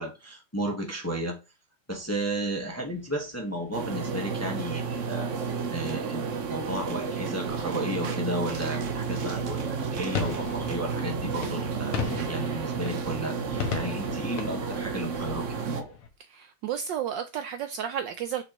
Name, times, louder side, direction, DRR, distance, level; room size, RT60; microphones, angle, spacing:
voice 1, 0.0-1.4 1.9-9.6 9.9-15.9, right 1 dB, 10° left, 1.0 m, -34 dB
sound 1, 1.9-16.1, left 7 dB, 85° left, 2.0 m, -40 dB
sound 2, 3.7-15.8, right 5 dB, 60° right, 0.8 m, -31 dB
voice 2, 16.3-18.4, right 9 dB, 75° right, 1.1 m, -32 dB
6.6 x 5.3 x 3.0 m
omnidirectional pair, 2.3 m